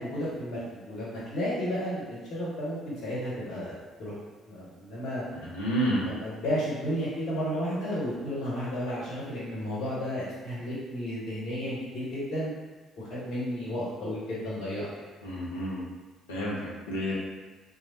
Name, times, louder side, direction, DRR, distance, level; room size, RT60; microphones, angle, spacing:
voice 1, 0.0-4.1 4.5-5.2 5.9-12.5 13.0-15.1, equal, 55° left, -8 dB, 1.2 m, -33 dB
voice 2, 5.3-6.1 15.2-15.8 16.3-17.1, equal, 75° left, -6 dB, 0.7 m, -30 dB
3.1 x 2.2 x 2.9 m, 1.3 s
figure-of-eight pair, 45°, 0 cm